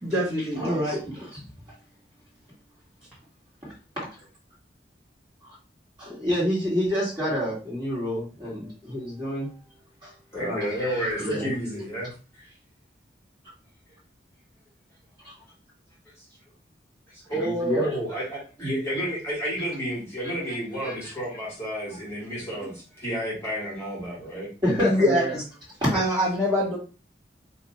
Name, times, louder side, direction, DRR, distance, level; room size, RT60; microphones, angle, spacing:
voice 1, 0.0-1.1 24.9-25.4 25.9-26.8, equal, 5° right, -9 dB, 1.0 m, -25 dB
voice 2, 0.6-1.4 3.6-4.2 5.4-5.6 6.0-9.5 10.0-11.5 15.2-15.3 17.4-17.9 20.7-21.1 24.6-25.3 25.8-26.0, equal, 25° right, -7 dB, 1.8 m, -28 dB
voice 3, 10.3-12.1 12.4-12.5 17.1-24.5, equal, 15° left, -6 dB, 1.3 m, -31 dB
2.7 x 2.6 x 4.1 m, 0.36 s
head